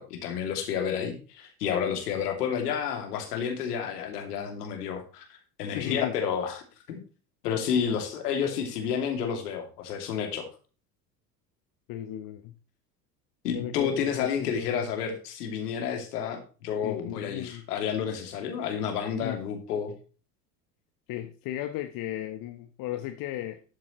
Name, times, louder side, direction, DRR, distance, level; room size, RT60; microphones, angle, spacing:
voice 1, 0.0-7.0 7.4-10.5 13.4-19.9, left 7 dB, 70° left, 4 dB, 2.8 m, -30 dB
voice 2, 5.7-6.1 11.9-12.5 13.5-14.8 16.8-17.6 19.2-19.4 21.1-23.6, left 13 dB, 45° left, 8 dB, 1.2 m, -35 dB
12.5 x 7.5 x 3.1 m, 0.35 s
figure-of-eight pair, 75°, 49 cm